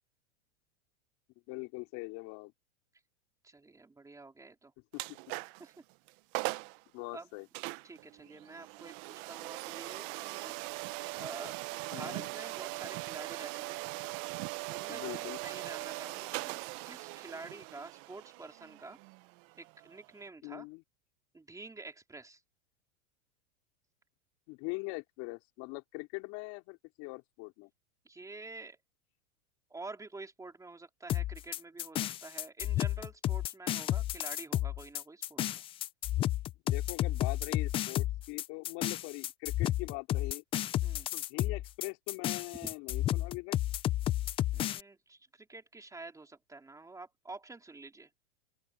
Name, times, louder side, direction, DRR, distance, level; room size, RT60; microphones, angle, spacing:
voice 1, 1.5-2.5 4.9-5.2 6.9-7.5 11.9-12.3 14.9-15.4 20.4-20.8 24.5-27.7 36.7-40.4 41.1-43.6, left 27 dB, 50° left, 4.2 m, -42 dB
voice 2, 3.4-4.7 5.6-5.8 7.1-7.3 7.8-10.5 11.1-11.6 11.9-13.8 14.7-19.0 19.5-20.7 21.3-22.4 28.0-28.8 29.7-35.6 40.8-41.1 42.6-42.7 44.5-48.1, right 3 dB, 10° right, 3.9 m, -48 dB
sound 1, 4.9-5.7 6.1-6.2 6.3-6.8 7.5-20.3, right 24 dB, 45° right, 0.9 m, -40 dB
sound 2, 31.1-44.8, left 13 dB, 15° left, 0.3 m, -32 dB
open air
supercardioid pair, 130°, 36 cm